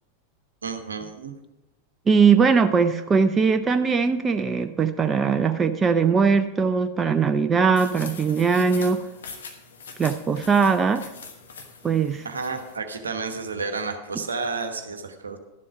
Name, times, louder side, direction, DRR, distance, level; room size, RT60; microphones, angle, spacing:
voice 1, 0.6-1.3 12.2-15.4, right 4 dB, 70° right, 6 dB, 1.2 m, -31 dB
voice 2, 2.1-9.0 10.0-11.1 11.8-12.3, right 5 dB, 20° right, 9 dB, 0.5 m, -20 dB
sound 1, 7.8-12.8, left 5 dB, 65° left, 1.3 m, -42 dB
12.0 x 7.5 x 5.1 m, 1.0 s
figure-of-eight pair, 90°, 0 cm